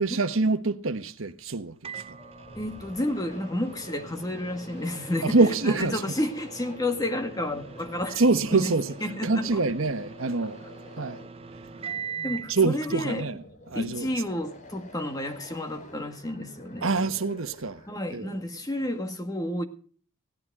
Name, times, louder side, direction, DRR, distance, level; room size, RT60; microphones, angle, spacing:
voice 1, 0.0-2.2 5.2-6.0 8.2-8.9 9.2-10.6 11.0-11.2 12.5-14.1 16.8-17.8 18.1-18.3, right 3 dB, 70° right, 1.2 m, -25 dB
Microwave oven, 1.8-12.6, right 6 dB, 25° right, 0.6 m, -42 dB
sound 1, 2.1-18.1, left 1 dB, 35° left, 4.1 m, -48 dB
voice 2, 2.6-8.2 8.5-8.7 9.0-9.6 11.0-11.1 12.2-13.3 13.7-16.9 17.9-19.6, left 1 dB, 15° left, 1.9 m, -31 dB
17.0 x 12.5 x 4.8 m
head